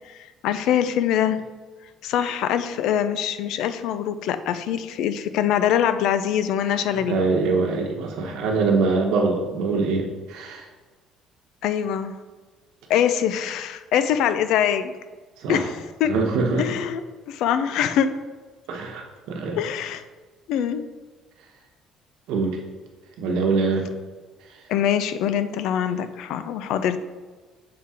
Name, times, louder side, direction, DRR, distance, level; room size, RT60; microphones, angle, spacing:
voice 1, 0.4-1.4 2.0-7.2 11.6-12.2 12.9-14.9 15.5-15.7 16.0-16.1 16.6-17.0 17.3-18.1 19.6-20.0 20.5-20.8 24.7-27.0, left 9 dB, 70° left, 11 dB, 0.4 m, -23 dB
voice 2, 7.0-10.7 15.4-15.6 16.1-16.7 18.7-19.6 22.3-22.6 23.2-23.9, right 4 dB, 75° right, 2 dB, 1.0 m, -23 dB
6.6 x 3.7 x 4.3 m, 1.4 s
cardioid pair, 145°, 0 cm